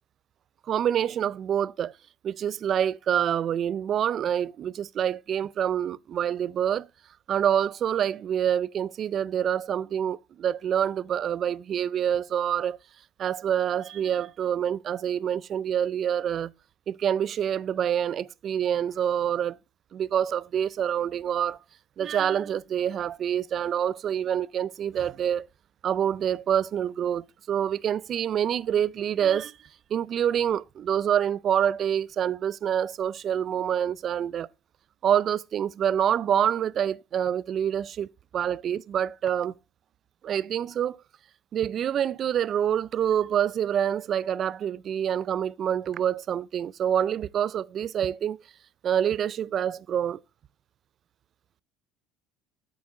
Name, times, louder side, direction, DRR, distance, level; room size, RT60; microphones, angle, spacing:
voice 1, 0.7-1.9 2.2-6.9 7.3-12.8 13.2-16.5 16.9-19.6 19.9-21.6 22.0-25.5 25.8-29.6 29.9-34.5 35.0-39.5 40.2-41.0 41.5-48.4 48.8-50.2, right 9 dB, 50° right, 0.4 m, -26 dB
8.6 x 7.2 x 4.2 m
supercardioid pair, 95°, 0 cm